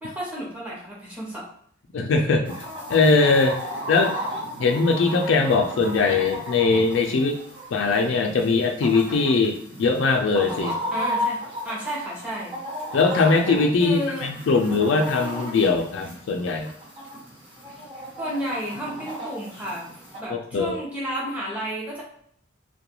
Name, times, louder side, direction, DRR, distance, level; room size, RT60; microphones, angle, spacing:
voice 1, 0.0-1.5 10.9-12.6 13.8-14.3 18.2-19.9 20.2-22.0, equal, 5° right, -6 dB, 0.7 m, -32 dB
voice 2, 1.9-3.6 3.9-4.1 4.6-7.4 7.7-10.8 12.9-16.7 20.5-20.7, left 4 dB, 65° left, 4 dB, 0.3 m, -21 dB
Chicken rooster, 2.4-20.2, equal, 25° right, 1.1 m, -35 dB
2.3 x 2.2 x 2.9 m, 0.65 s
head